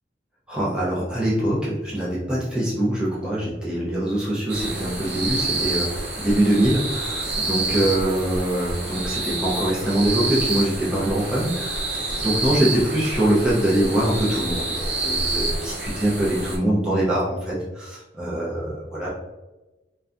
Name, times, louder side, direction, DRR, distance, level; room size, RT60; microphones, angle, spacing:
voice 1, 0.5-19.1, right 1 dB, 5° right, -7 dB, 0.5 m, -23 dB
sound 1, 4.5-16.6, right 2 dB, 70° right, 0.6 m, -28 dB
2.6 x 2.2 x 2.4 m, 1.1 s
head